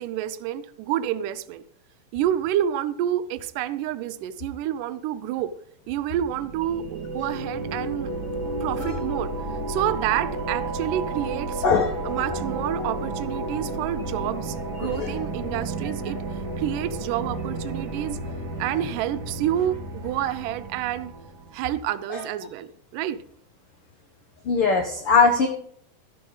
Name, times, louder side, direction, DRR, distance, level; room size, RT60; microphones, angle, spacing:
voice 1, 0.0-1.6 2.1-5.5 5.9-8.1 8.6-9.3 9.7-11.6 12.1-18.2 18.6-21.1 21.5-23.2, right 11 dB, 75° right, 13 dB, 2.1 m, -28 dB
sound 1, 6.1-21.6, right 2 dB, 35° right, 2.0 m, -32 dB
voice 2, 11.6-12.1 14.8-15.1 22.1-22.2 24.4-25.5, left 5 dB, 70° left, 4 dB, 1.3 m, -21 dB
13.5 x 11.5 x 3.9 m, 0.66 s
omnidirectional pair, 4.2 m